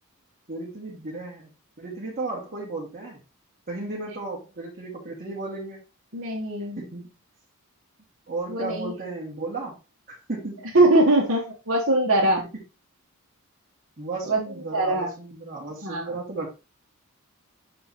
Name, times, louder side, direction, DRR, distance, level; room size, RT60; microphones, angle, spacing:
voice 1, 0.5-1.5 1.8-3.2 3.7-5.8 6.8-7.1 8.3-9.8 10.1-10.7 14.0-16.5, right 3 dB, 40° right, -5 dB, 1.8 m, -34 dB
voice 2, 6.1-6.8 8.5-8.9 10.7-12.4 14.2-14.4 14.7-15.1 15.8-16.1, right 2 dB, 60° right, -5 dB, 1.6 m, -21 dB
6.8 x 3.4 x 4.2 m, 0.30 s
head